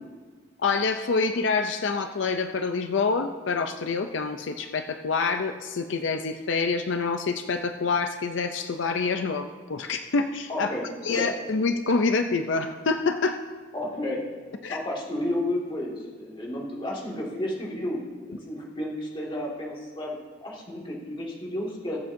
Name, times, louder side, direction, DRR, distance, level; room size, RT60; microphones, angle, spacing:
voice 1, 0.6-10.7 11.0-13.4 14.6-14.8, left 4 dB, 80° left, 7 dB, 0.5 m, -26 dB
voice 2, 10.5-11.4 13.7-14.2 14.7-22.0, left 1 dB, 25° left, -3 dB, 2.1 m, -32 dB
21.5 x 7.7 x 2.7 m, 1.5 s
head